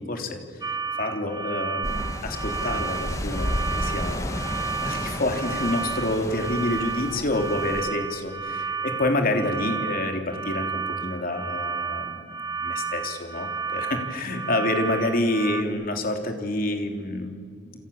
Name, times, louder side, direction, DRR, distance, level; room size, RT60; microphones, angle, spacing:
voice 1, 0.0-12.3 12.6-17.8, left 1 dB, 45° left, 4 dB, 3.3 m, -28 dB
sound 1, 0.6-15.6, right 5 dB, 20° right, 1.6 m, -32 dB
sound 2, 1.8-7.9, left 1 dB, 15° left, 1.7 m, -32 dB
28.5 x 27.5 x 7.2 m, 2.2 s
head